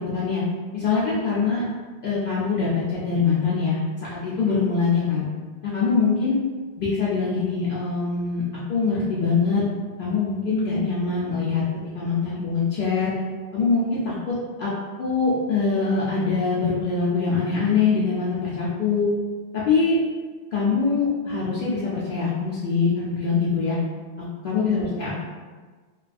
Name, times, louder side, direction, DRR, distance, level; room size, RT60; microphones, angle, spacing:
voice 1, 0.7-1.6 2.0-3.8 4.2-5.2 5.6-6.4 6.8-8.4 8.7-9.6 10.0-11.6 11.9-13.1 13.5-14.7 15.0-19.1 19.7-19.9 20.5-23.8 24.4-25.2, left 5 dB, 60° left, -8 dB, 0.6 m, -23 dB
2.3 x 2.3 x 2.4 m, 1.4 s
omnidirectional pair, 1.1 m